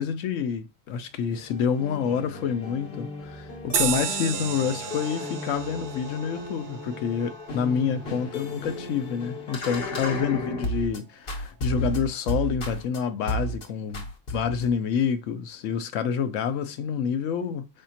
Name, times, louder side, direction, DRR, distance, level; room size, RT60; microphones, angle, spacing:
voice 1, 0.0-14.0 14.3-17.7, left 7 dB, 70° left, 1.0 m, -28 dB
sound 1, 1.2-11.0 11.3-13.0 13.3-13.6 13.9-14.7, equal, 50° left, 1.1 m, -34 dB
sound 2, 3.7-8.6, right 9 dB, 65° right, 0.8 m, -33 dB
5.1 x 3.6 x 2.8 m
omnidirectional pair, 1.4 m